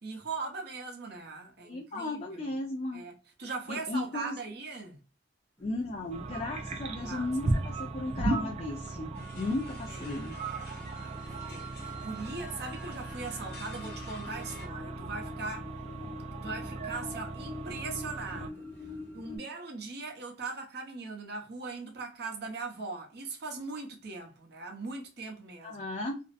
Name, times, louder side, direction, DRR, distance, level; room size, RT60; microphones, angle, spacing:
voice 1, 0.0-2.5 2.9-3.1 3.4-5.0 7.0-7.3 7.7-7.8 9.9-10.2 10.5-15.7 16.4-18.7 19.1-25.8, right 3 dB, 60° right, 0.8 m, -40 dB
voice 2, 1.6-3.0 3.7-4.4 5.6-10.3 25.6-26.2, left 2 dB, 35° left, 0.4 m, -35 dB
sound 1, 5.6-19.4, left 3 dB, 10° left, 0.8 m, -47 dB
sound 2, 6.1-18.5, right 2 dB, 35° right, 0.4 m, -37 dB
sound 3, 9.1-14.7, equal, 60° left, 1.0 m, -48 dB
2.5 x 2.0 x 2.5 m
head